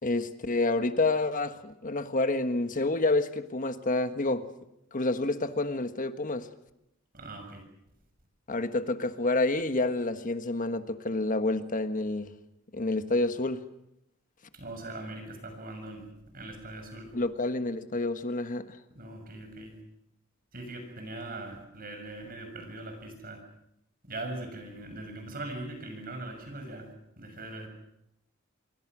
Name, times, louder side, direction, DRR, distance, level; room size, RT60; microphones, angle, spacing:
voice 1, 0.0-4.4 4.9-6.5 8.5-12.3 12.7-13.6 17.1-18.8, left 2 dB, 40° left, 1.4 m, -28 dB
voice 2, 7.1-7.6 14.5-17.1 18.9-19.8 20.5-23.4 24.0-26.9 27.2-27.7, right 2 dB, 45° right, 6.8 m, -41 dB
27.0 x 23.5 x 6.2 m
head